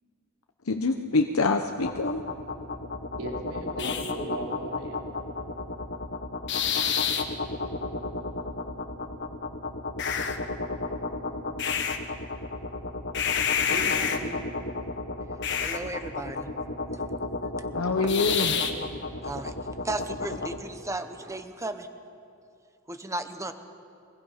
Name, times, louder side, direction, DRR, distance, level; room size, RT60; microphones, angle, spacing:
voice 1, 0.6-2.2 3.8-3.9 17.7-18.5, left 3 dB, 70° left, 5 dB, 0.9 m, -25 dB
sound 1, 1.8-20.6, left 5 dB, 55° left, 1.4 m, -30 dB
voice 2, 3.2-5.0 13.7-14.4 18.0-18.8, right 1 dB, 75° right, -2 dB, 4.1 m, -37 dB
voice 3, 15.6-16.5 16.9-17.0 18.0-18.1 19.2-19.5 19.8-21.9 22.9-23.5, right 2 dB, 15° right, 8 dB, 1.1 m, -35 dB
24.0 x 21.0 x 5.8 m, 2.5 s
head